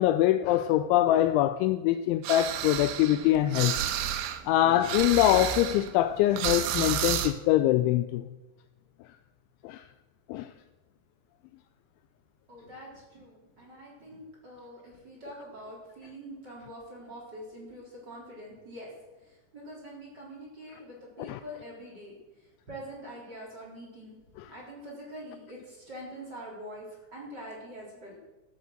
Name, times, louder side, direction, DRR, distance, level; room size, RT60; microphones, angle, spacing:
voice 1, 0.0-3.8 4.1-8.3 9.6-9.8 10.3-10.5 21.2-21.4 24.4-24.5, left 13 dB, 90° left, 2.6 m, -24 dB
sound 1, 2.2-4.4 4.7-7.3, right 10 dB, 85° right, 3.6 m, -31 dB
voice 2, 12.5-26.9 27.1-28.2, equal, 20° right, 3.9 m, -45 dB
14.0 x 9.4 x 7.8 m
omnidirectional pair, 5.9 m